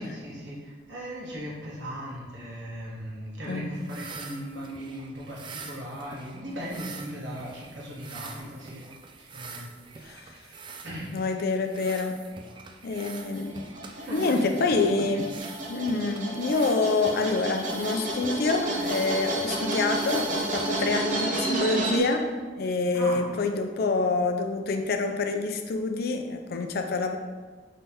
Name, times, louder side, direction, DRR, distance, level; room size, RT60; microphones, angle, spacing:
voice 1, 0.0-8.8 9.3-9.7 10.8-11.1 13.9-14.5 14.8-15.2 22.9-23.3, equal, 75° right, -6 dB, 1.3 m, -38 dB
voice 2, 3.4-3.8 10.0-10.2 11.1-12.2 12.8-13.6 14.1-15.3 15.7-27.2, left 3 dB, 60° left, 6 dB, 0.4 m, -27 dB
sound 1, 3.7-21.3, right 5 dB, 25° right, 0.3 m, -45 dB
sound 2, 12.9-22.0, right 2 dB, 45° right, 0.7 m, -31 dB
5.3 x 3.3 x 2.9 m, 1.4 s
head